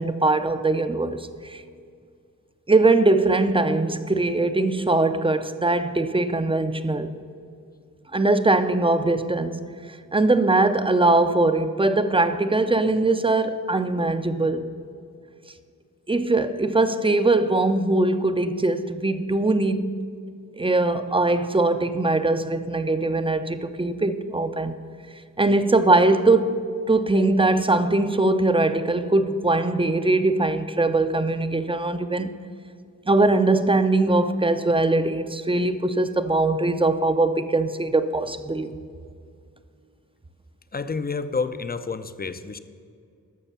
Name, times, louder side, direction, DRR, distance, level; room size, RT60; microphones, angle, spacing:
voice 1, 0.0-1.6 2.7-7.1 8.1-14.7 16.1-20.1 20.5-24.8 25.4-26.6 26.9-32.3 33.1-38.8, right 2 dB, 15° right, 0.6 m, -21 dB
voice 2, 40.7-42.6, left 4 dB, 25° left, 0.6 m, -29 dB
13.0 x 6.4 x 6.8 m
wide cardioid pair, 60°, 36 cm